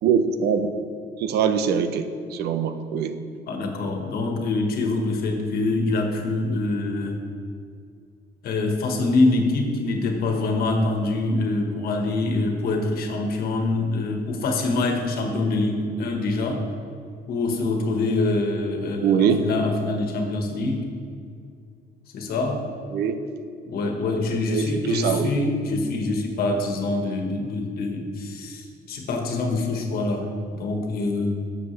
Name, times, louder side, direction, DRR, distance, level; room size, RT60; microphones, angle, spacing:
voice 1, 0.0-0.7 1.2-3.1 19.0-19.4 22.9-23.2 24.5-25.5, right 7 dB, 75° right, 9 dB, 0.7 m, -23 dB
voice 2, 3.5-7.2 8.4-16.7 17.3-20.9 22.1-22.7 23.6-31.3, left 2 dB, 65° left, 3 dB, 1.5 m, -25 dB
12.5 x 7.5 x 3.3 m, 2.3 s
cardioid pair, 110°, 17 cm